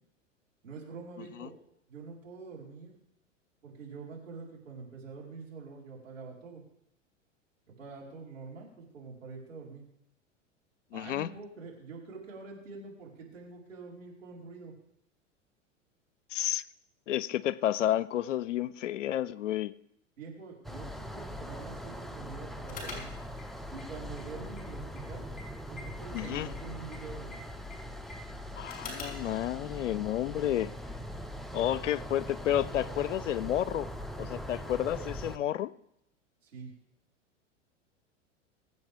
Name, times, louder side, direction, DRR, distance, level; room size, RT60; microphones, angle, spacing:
voice 1, 0.6-1.5 1.9-3.0 3.6-6.6 7.7-9.9 10.9-14.7 20.2-23.2 23.7-25.3 25.7-27.4 36.4-36.7, right 4 dB, 80° right, -3 dB, 4.5 m, -45 dB
voice 2, 1.2-1.5 10.9-11.3 16.3-16.6 17.1-19.7 26.1-26.5 28.6-30.7 31.5-33.9 34.2-35.7, left 12 dB, 70° left, 20 dB, 0.6 m, -31 dB
sound 1, 20.6-35.4, equal, ahead, 0.5 m, -41 dB
sound 2, 22.6-29.3, left 3 dB, 25° left, 4.7 m, -48 dB
sound 3, 30.1-35.1, right 1 dB, 20° right, 4.4 m, -58 dB
23.5 x 8.1 x 3.5 m, 0.78 s
figure-of-eight pair, 90°, 38 cm